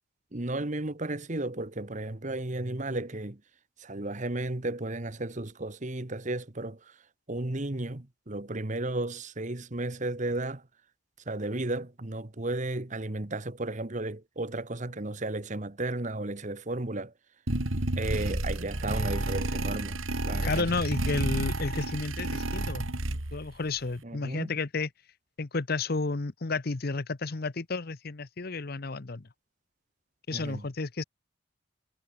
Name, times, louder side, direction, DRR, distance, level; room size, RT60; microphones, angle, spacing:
voice 1, 0.3-3.4 3.8-7.0 7.3-10.6 11.3-17.1 18.0-20.0 20.2-20.7 24.0-24.5 30.3-30.7, right 2 dB, 35° right, 1.3 m, -34 dB
sound 1, 17.5-23.5, right 1 dB, 75° right, 2.9 m, -31 dB
voice 2, 20.4-22.8 23.3-24.9 25.4-29.3 30.3-31.0, left 3 dB, 45° left, 0.8 m, -31 dB
head